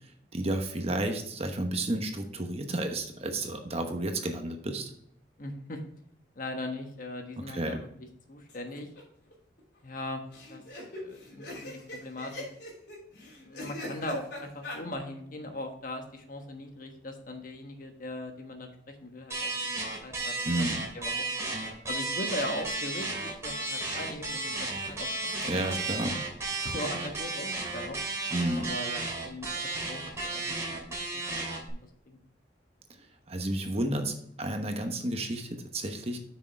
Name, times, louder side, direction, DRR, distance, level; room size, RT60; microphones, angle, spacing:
voice 1, 0.3-4.9 7.5-7.8 20.4-20.8 25.5-26.1 28.3-28.7 33.0-36.2, right 1 dB, 35° right, 5 dB, 1.0 m, -31 dB
voice 2, 5.4-5.8 6.3-7.9 8.3-8.9 9.8-10.2 10.5-10.6 10.9-12.5 13.4-19.7 20.0-20.7 20.9-25.7 26.6-28.0 28.5-31.2 31.7-31.8 32.0-32.2, left 1 dB, 45° left, 5 dB, 1.3 m, -39 dB
sound 1, 8.5-9.0 9.3-9.4 9.6-9.7 10.3-14.8, left 1 dB, 65° left, 3.2 m, -41 dB
sound 2, 19.3-31.7, right 2 dB, 15° right, 3.0 m, -33 dB
8.2 x 6.3 x 3.5 m, 0.69 s
head